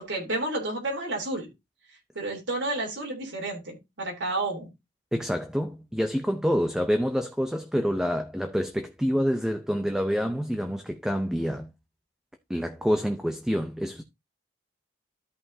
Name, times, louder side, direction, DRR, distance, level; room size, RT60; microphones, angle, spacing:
voice 1, 0.1-1.5 2.1-4.7, right 2 dB, 75° right, 3.3 m, -31 dB
voice 2, 5.1-11.7 12.5-14.0, equal, 5° right, 0.5 m, -27 dB
13.5 x 5.5 x 2.7 m
head